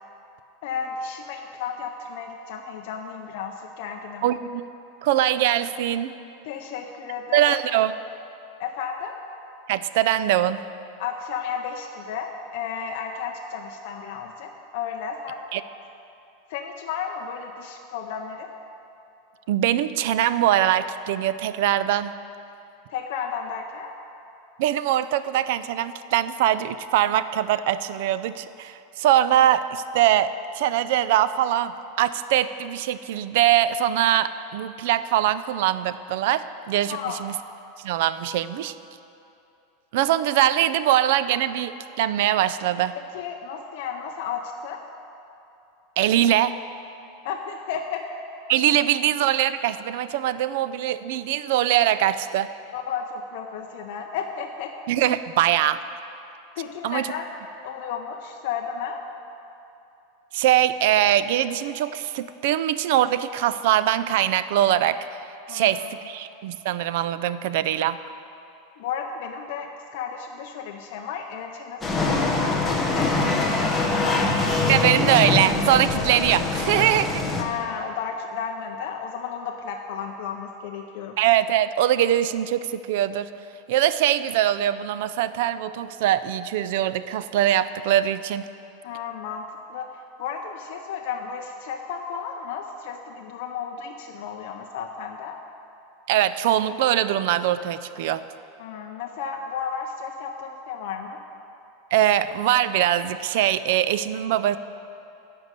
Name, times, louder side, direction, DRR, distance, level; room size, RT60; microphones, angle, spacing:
voice 1, 0.6-4.2 6.4-7.6 8.6-9.2 11.0-15.5 16.5-18.5 22.9-23.9 36.9-37.2 43.1-44.8 47.2-48.0 52.7-54.7 56.6-57.3 57.6-59.0 65.5-65.9 68.8-74.2 77.4-81.2 88.8-89.9 90.2-95.4 98.6-101.2, left 7 dB, 55° left, 2 dB, 0.6 m, -33 dB
voice 2, 4.2-4.7 5.0-6.1 7.3-7.9 9.7-10.6 15.5-15.6 19.5-22.1 24.6-37.3 37.8-38.7 39.9-42.9 46.0-46.6 48.5-52.5 54.9-55.8 56.8-57.1 60.3-65.0 65.5-68.0 74.7-77.2 81.2-83.3 83.7-88.5 96.1-98.3 101.9-104.6, right 12 dB, 55° right, 14 dB, 0.3 m, -22 dB
sound 1, 71.8-77.4, left 3 dB, 10° left, 0.9 m, -23 dB
11.0 x 5.3 x 8.1 m, 2.8 s
supercardioid pair, 170°, 0 cm